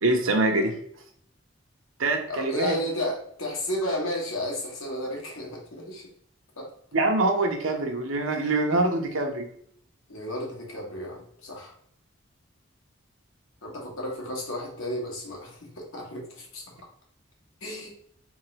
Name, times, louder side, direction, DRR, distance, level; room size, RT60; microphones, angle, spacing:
voice 1, 0.0-0.8 2.0-2.8 6.9-9.5, right 2 dB, 75° right, 3 dB, 0.9 m, -24 dB
voice 2, 2.3-6.1 6.6-6.7 10.1-11.7 13.6-16.6 17.6-17.9, left 1 dB, 80° left, -2 dB, 1.5 m, -33 dB
3.7 x 3.6 x 3.3 m, 0.65 s
head